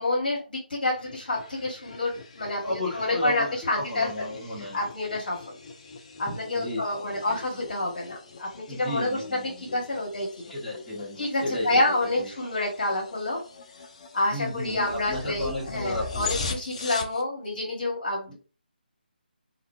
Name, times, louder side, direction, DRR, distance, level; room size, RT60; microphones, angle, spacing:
voice 1, 0.0-4.1 4.6-5.6 6.2-10.3 11.2-13.4 14.1-18.3, left 2 dB, 55° left, -2 dB, 1.2 m, -28 dB
sound 1, 0.9-17.2, left 4 dB, 35° left, 0.4 m, -41 dB
voice 2, 2.6-3.5 3.7-4.8 6.5-7.4 8.7-9.8 10.5-12.3 14.3-16.4 18.3-18.4, left 1 dB, ahead, -13 dB, 0.8 m, -33 dB
2.5 x 2.2 x 2.4 m, 0.36 s
figure-of-eight pair, 150°, 6 cm